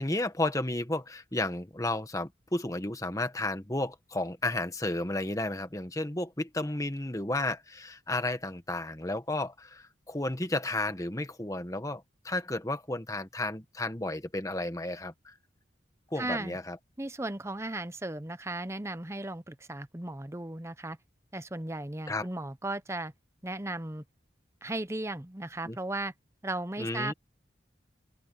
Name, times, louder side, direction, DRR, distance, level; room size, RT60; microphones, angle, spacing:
voice 1, 0.0-15.3 16.1-16.8 22.1-22.3 25.6-25.8 26.8-27.1, left 2 dB, 20° left, 1.4 m, -32 dB
voice 2, 16.2-16.6 17.0-21.0 21.3-23.1 23.4-24.0 24.6-26.1 26.4-27.1, right 2 dB, 15° right, 0.7 m, -36 dB
open air
head